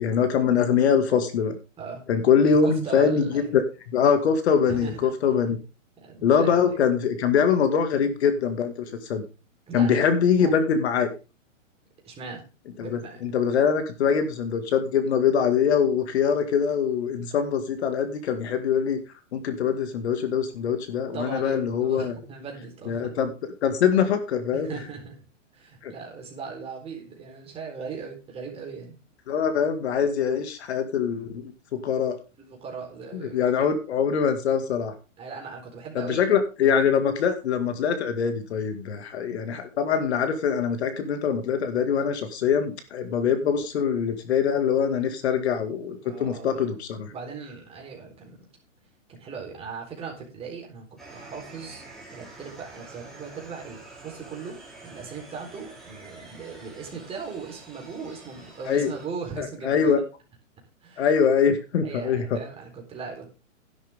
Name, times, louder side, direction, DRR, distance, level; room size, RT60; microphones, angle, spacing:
voice 1, 0.0-1.6 2.1-3.6 3.9-5.6 6.2-9.2 9.7-11.1 12.8-19.0 19.3-22.1 22.9-24.7 25.8-25.9 29.3-32.2 33.1-34.9 36.0-47.0 58.7-58.9 59.4-60.0 61.0-62.4, left 7 dB, 55° left, 8 dB, 2.2 m, -23 dB
voice 2, 1.8-2.1 2.4-3.5 4.6-5.3 6.0-6.8 9.7-10.6 12.0-12.5 12.8-13.2 21.1-23.1 24.5-25.3 25.5-29.0 32.5-33.7 35.2-36.2 46.0-46.7 47.1-48.4 49.1-51.8 52.1-60.0 60.8-61.1 61.8-63.3, right 5 dB, 15° right, 0 dB, 4.1 m, -39 dB
sound 1, 51.0-59.1, right 2 dB, ahead, 3.8 m, -47 dB
12.5 x 11.5 x 3.6 m, 0.31 s
hypercardioid pair, 145°, 38 cm